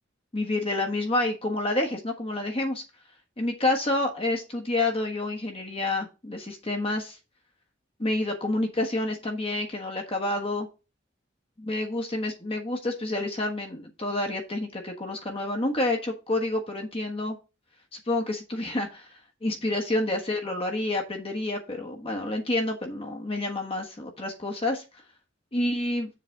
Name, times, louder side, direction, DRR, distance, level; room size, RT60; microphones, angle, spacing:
voice 1, 0.3-2.8 3.4-7.2 8.0-10.7 11.6-17.4 17.9-24.8 25.5-26.1, left 2 dB, 30° left, 2 dB, 1.3 m, -28 dB
7.2 x 3.9 x 6.0 m, 0.28 s
head